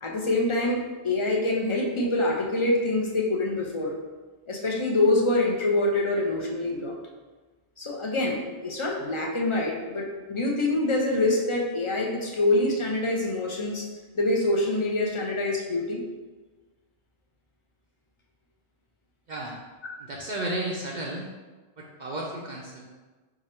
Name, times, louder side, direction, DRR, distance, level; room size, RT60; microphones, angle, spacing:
voice 1, 0.0-3.9 4.5-7.0 7.8-13.9 14.1-16.0, left 2 dB, 35° left, -1 dB, 0.6 m, -25 dB
voice 2, 20.0-21.3 21.8-22.9, right 1 dB, 55° right, -2 dB, 0.6 m, -33 dB
4.8 x 2.5 x 4.2 m, 1.3 s
omnidirectional pair, 1.1 m